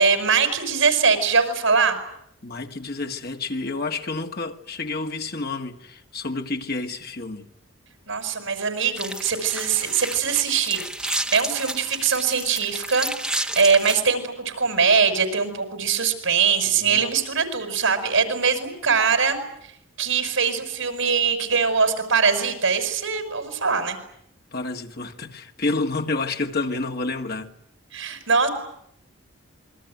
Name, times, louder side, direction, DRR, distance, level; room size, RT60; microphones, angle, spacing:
voice 1, 0.0-2.0 8.1-19.4 20.0-24.0 27.9-28.5, right 5 dB, 70° right, 6.5 m, -22 dB
voice 2, 2.4-7.5 16.9-17.0 24.5-27.5, left 3 dB, 50° left, 1.9 m, -29 dB
sound 1, 9.0-14.0, right 1 dB, 5° right, 1.5 m, -31 dB
28.0 x 23.0 x 9.2 m
head